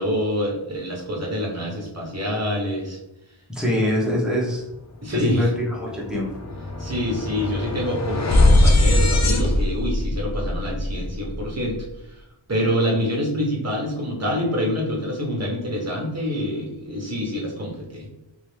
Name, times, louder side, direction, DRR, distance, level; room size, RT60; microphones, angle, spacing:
voice 1, 0.0-3.0 3.7-3.8 5.0-5.5 6.8-11.8 12.5-18.1, equal, 35° right, -2 dB, 1.2 m, -26 dB
voice 2, 3.5-4.6 5.1-6.3, equal, ahead, -6 dB, 1.1 m, -24 dB
sound 1, 5.1-5.3 5.6-11.8, left 1 dB, 35° left, 0.5 m, -21 dB
3.0 x 2.9 x 3.3 m, 0.89 s
wide cardioid pair, 70°, 48 cm